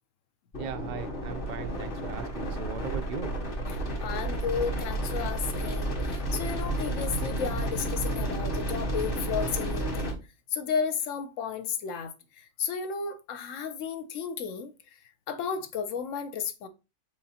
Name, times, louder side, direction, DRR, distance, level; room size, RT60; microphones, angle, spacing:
sound 1, 0.5-10.1, right 1 dB, 40° left, 1.4 m, -31 dB
voice 1, 0.6-3.3, right 6 dB, 65° right, 0.4 m, -38 dB
voice 2, 3.7-10.2 10.5-14.7 15.3-16.7, left 6 dB, 70° left, 0.9 m, -33 dB
4.8 x 3.8 x 2.8 m
omnidirectional pair, 1.5 m